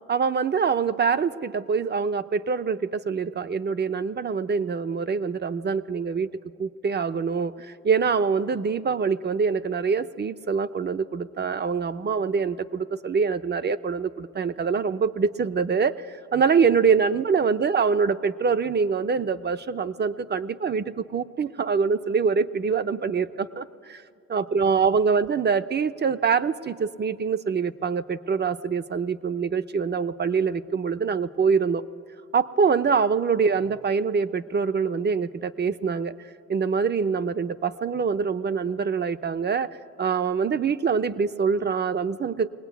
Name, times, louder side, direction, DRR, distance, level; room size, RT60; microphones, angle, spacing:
voice 1, 0.1-6.3 6.6-24.0 24.3-31.8 32.3-36.1 36.5-39.7 40.0-42.5, right 5 dB, 35° right, 12 dB, 0.8 m, -24 dB
22.0 x 18.5 x 9.3 m, 2.4 s
cardioid pair, 90°, 30 cm